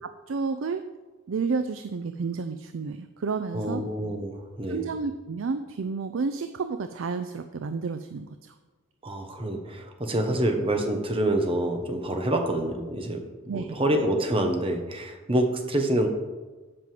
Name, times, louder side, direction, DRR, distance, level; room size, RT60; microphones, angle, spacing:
voice 1, 0.0-0.8 1.3-3.8 4.7-8.5 13.5-13.8, right 4 dB, 65° right, 9 dB, 0.4 m, -31 dB
voice 2, 3.5-4.9 9.0-16.1, right 1 dB, 25° right, 4 dB, 1.0 m, -27 dB
7.7 x 5.3 x 7.6 m, 1.3 s
head